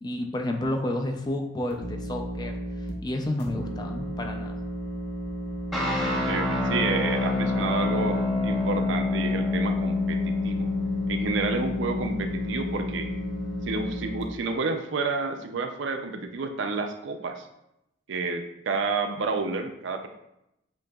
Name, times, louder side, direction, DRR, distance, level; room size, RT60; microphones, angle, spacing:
voice 1, 0.0-4.6, left 1 dB, 20° left, 4 dB, 0.3 m, -31 dB
sound 1, 1.7-2.9 3.4-14.2, right 1 dB, 55° left, 0.8 m, -34 dB
sound 2, 5.7-14.0, left 3 dB, ahead, 0.7 m, -28 dB
voice 2, 6.1-10.7 11.1-13.1 13.6-17.5 18.1-20.1, right 4 dB, 65° right, 6 dB, 0.4 m, -30 dB
7.6 x 2.8 x 2.3 m, 0.84 s
head